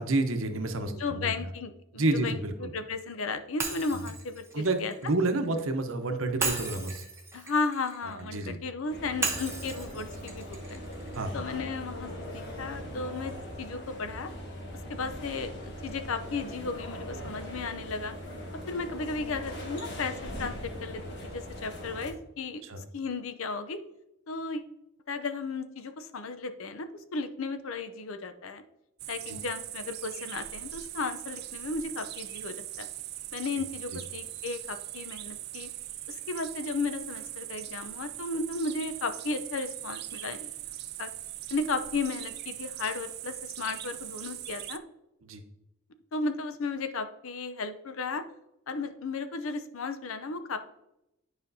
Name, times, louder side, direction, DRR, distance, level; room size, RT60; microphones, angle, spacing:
voice 1, 0.0-1.3 1.9-2.7 3.9-4.0 4.5-7.0 8.2-8.6 11.1-11.6 22.6-22.8 29.3-29.4 45.2-45.4, right 2 dB, 75° right, 7 dB, 0.8 m, -30 dB
voice 2, 0.9-4.9 7.3-10.8 11.3-13.3 13.6-14.3 14.9-18.1 18.7-22.6 22.9-23.8 24.3-24.7 25.1-26.9 27.1-28.6 29.1-32.9 33.3-35.7 36.1-40.5 41.0-41.1 41.5-44.8 46.1-48.2 48.7-50.6, left 3 dB, 75° left, 10 dB, 0.6 m, -34 dB
Shatter, 3.6-5.7 6.4-8.5 9.2-11.3, right 3 dB, 15° right, 0.8 m, -36 dB
sound 1, 8.9-22.1, equal, 55° left, 1.5 m, -40 dB
sound 2, 29.0-44.8, right 14 dB, 50° right, 0.3 m, -40 dB
9.9 x 5.0 x 2.7 m, 0.88 s
head